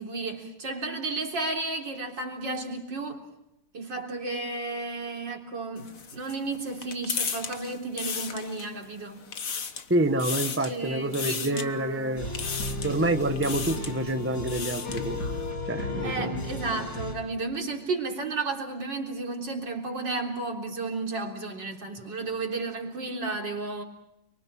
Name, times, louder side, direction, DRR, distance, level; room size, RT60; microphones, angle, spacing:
voice 1, 0.0-3.2 3.7-9.2 10.5-12.3 16.0-23.8, right 3 dB, 60° right, 4.3 m, -33 dB
sound 1, 5.8-8.8 9.2-9.9 10.2-10.8 11.1-11.7 12.3-13.0 13.4-13.9 14.3-15.1, left 6 dB, 45° left, 1.6 m, -34 dB
voice 2, 9.9-12.3 12.8-15.2 15.7-16.3, right 1 dB, 10° right, 0.8 m, -27 dB
sound 2, 12.2-17.1, left 2 dB, 65° left, 8.1 m, -34 dB
30.0 x 23.5 x 6.0 m
omnidirectional pair, 2.2 m